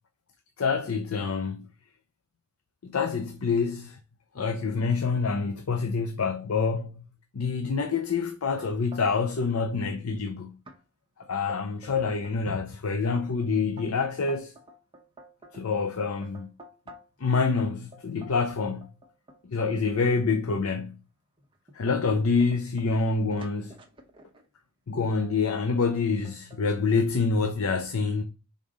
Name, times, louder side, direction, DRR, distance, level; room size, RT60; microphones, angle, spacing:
voice 1, 0.6-1.7 2.8-4.0 4.3-7.0 7.3-10.6 11.3-14.5 15.5-16.5 17.2-18.9 19.4-21.0 21.7-23.7 24.9-28.2, left 4 dB, 80° left, 0.6 m, -27 dB
sound 1, 8.6-9.5 9.8-10.3 10.7-10.8 11.2-12.4 12.9-17.2 17.6-20.1 20.8-20.9 21.4-24.5 25.2-25.6 25.9-26.6, right 1 dB, 25° right, 0.9 m, -49 dB
5.5 x 3.6 x 4.9 m
head